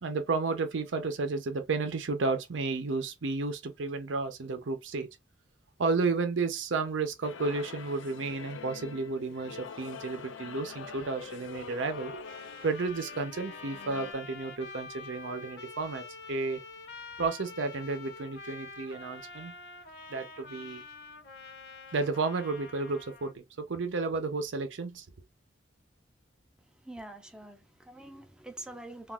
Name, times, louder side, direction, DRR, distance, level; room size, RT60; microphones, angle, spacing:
voice 1, 0.0-5.1 5.8-12.2 12.6-16.6 17.2-19.6 20.1-20.8 21.7-25.1, right 3 dB, 80° right, 0.6 m, -32 dB
sound 1, 7.2-14.1, left 6 dB, 90° left, 0.4 m, -45 dB
Trumpet, 11.7-23.3, left 4 dB, 65° left, 0.8 m, -47 dB
voice 2, 26.9-29.1, right 1 dB, 5° right, 0.5 m, -45 dB
2.4 x 2.3 x 3.6 m
head